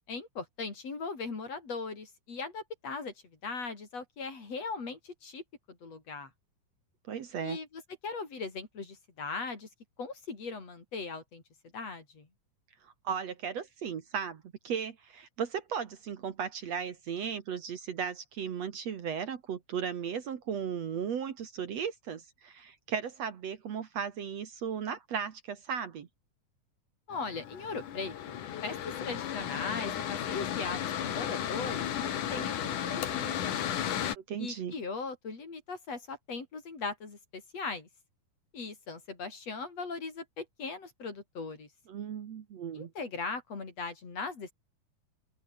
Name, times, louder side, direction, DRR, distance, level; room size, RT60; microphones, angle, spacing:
voice 1, 0.0-3.1 3.4-6.3 7.4-9.7 10.0-11.4 11.7-12.3 27.1-28.4 28.6-33.6 34.4-37.9 38.5-41.7 42.7-44.5, left 4 dB, 50° left, 5.6 m, -39 dB
voice 2, 7.1-7.6 12.8-26.1 34.2-34.7 41.9-42.9, right 7 dB, 55° right, 2.6 m, -36 dB
Mechanical fan, 27.1-34.2, left 10 dB, 70° left, 3.3 m, -34 dB
open air
omnidirectional pair, 3.8 m